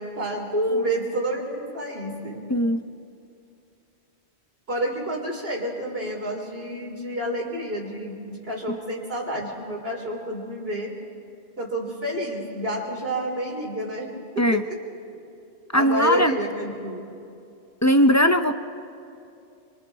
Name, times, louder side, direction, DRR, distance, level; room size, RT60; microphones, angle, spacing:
voice 1, 0.0-2.4 4.7-10.9 11.6-14.7 15.7-17.0, right 1 dB, 65° right, 0 dB, 3.6 m, -29 dB
voice 2, 0.5-0.9 2.5-2.8 14.4-14.6 15.7-16.4 17.8-18.6, equal, 20° left, 8 dB, 0.5 m, -19 dB
30.0 x 24.5 x 4.0 m, 2.6 s
omnidirectional pair, 1.1 m